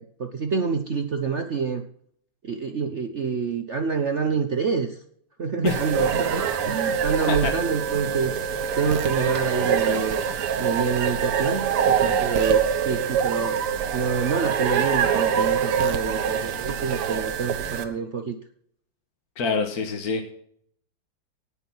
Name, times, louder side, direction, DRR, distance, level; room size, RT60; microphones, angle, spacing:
voice 1, 0.0-1.8 2.4-5.0 5.4-10.2 10.6-13.6 13.9-18.4, right 5 dB, 55° right, 6 dB, 0.8 m, -27 dB
sound 1, 5.7-17.8, right 7 dB, 85° right, 2.1 m, -25 dB
voice 2, 19.4-20.3, left 5 dB, 45° left, 3 dB, 1.8 m, -26 dB
18.0 x 6.3 x 5.6 m, 0.64 s
omnidirectional pair, 2.4 m